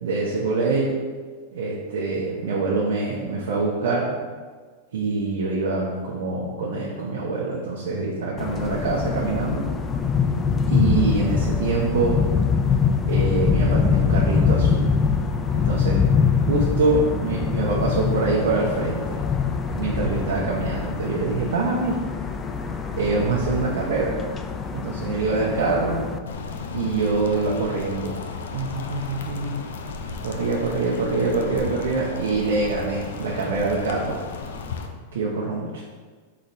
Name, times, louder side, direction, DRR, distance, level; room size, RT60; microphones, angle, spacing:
voice 1, 0.0-1.0 1.5-4.1 4.9-9.7 10.7-12.2 13.0-14.9 15.5-16.1 16.4-19.2 19.7-22.0 22.9-24.2 24.7-26.0 26.7-28.2 28.5-29.5 30.2-34.2 35.1-35.8, right 3 dB, 80° right, -5 dB, 0.8 m, -25 dB
sound 1, 8.4-26.2, left 6 dB, 25° left, 0.3 m, -24 dB
sound 2, 26.3-34.9, left 4 dB, 80° left, 0.5 m, -34 dB
4.0 x 3.2 x 4.0 m, 1.5 s
hypercardioid pair, 125°, 0 cm